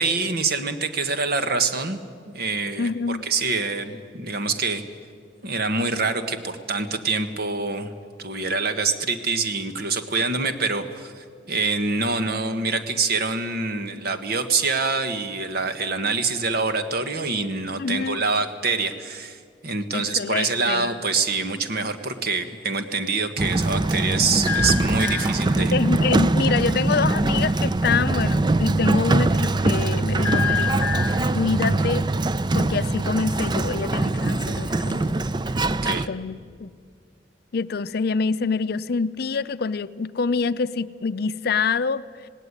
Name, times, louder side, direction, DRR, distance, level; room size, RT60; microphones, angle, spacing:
voice 1, 0.0-2.0 2.3-4.8 5.4-7.9 8.2-25.8 35.8-36.1, right 4 dB, 60° right, 9 dB, 1.4 m, -25 dB
voice 2, 2.8-3.2 17.8-18.2 19.9-20.9 25.7-30.8 31.3-32.1 32.5-35.2 35.9-36.7 37.5-42.0, left 4 dB, 60° left, 14 dB, 0.5 m, -26 dB
sound 1, 20.6-21.1 24.5-25.7 30.2-31.4 34.1-35.1, left 6 dB, 10° left, 1.7 m, -29 dB
Sliding door, 23.4-36.1, right 2 dB, 25° right, 0.5 m, -22 dB
18.5 x 18.0 x 9.8 m, 2.1 s
head